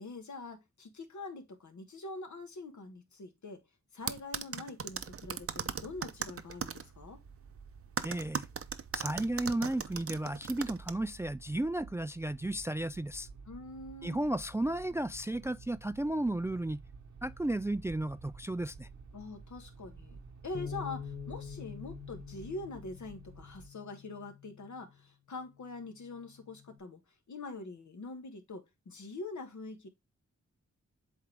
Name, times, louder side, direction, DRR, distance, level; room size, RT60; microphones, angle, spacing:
voice 1, 0.0-3.6 3.9-7.2 13.5-14.2 19.1-20.2 20.4-27.0 27.3-29.9, left 3 dB, 75° left, 1.5 m, -44 dB
sound 1, 4.1-6.8 8.0-10.9, right 6 dB, 50° right, 0.7 m, -37 dB
sound 2, 4.9-23.7, right 4 dB, 75° right, 1.1 m, -52 dB
voice 2, 8.0-8.5 8.9-13.3 14.0-16.8 17.2-18.9, right 1 dB, 10° right, 0.3 m, -33 dB
Bass guitar, 20.5-25.0 25.6-26.8, left 7 dB, 40° left, 0.8 m, -46 dB
7.7 x 3.7 x 3.3 m
cardioid pair, 55°, 29 cm